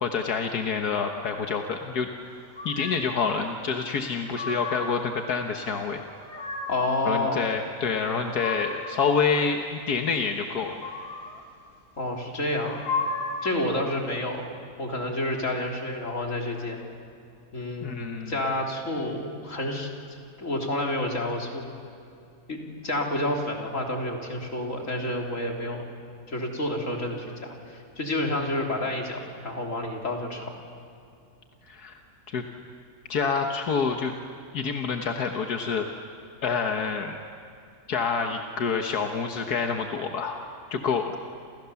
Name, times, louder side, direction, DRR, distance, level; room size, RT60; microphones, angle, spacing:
voice 1, 0.0-2.1 2.7-6.0 7.1-10.8 17.8-18.3 31.7-32.0 32.3-32.4 33.1-34.1 34.5-35.9 36.4-37.2 37.9-40.4 40.7-41.1, left 5 dB, 85° left, 3 dB, 1.9 m, -27 dB
sound 1, 2.5-3.1 4.0-5.0 5.9-6.9 7.9-9.0 10.5-11.4 12.5-13.6, left 3 dB, 85° right, 4.8 m, -34 dB
voice 2, 6.7-7.4 12.0-12.9 13.4-14.4 14.8-16.8 17.5-19.9 20.4-21.6 22.5-25.8 26.3-30.5, left 1 dB, 55° left, 1 dB, 3.9 m, -29 dB
29.5 x 28.5 x 7.1 m, 2.5 s
omnidirectional pair, 1.6 m